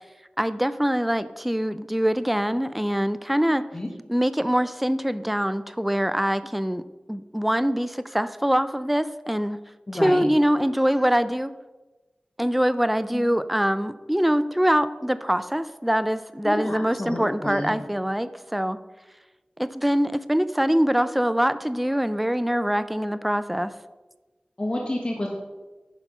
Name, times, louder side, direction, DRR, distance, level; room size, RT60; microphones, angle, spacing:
voice 1, 0.4-3.6 4.1-6.8 7.1-9.6 10.0-11.5 12.4-18.8 19.6-23.7, equal, 5° right, 13 dB, 0.4 m, -24 dB
voice 2, 9.9-10.3 13.1-13.2 16.4-17.7 24.6-25.3, left 1 dB, 35° left, -1 dB, 1.5 m, -29 dB
10.5 x 5.7 x 5.5 m, 1.2 s
wide cardioid pair, 60°, 3 cm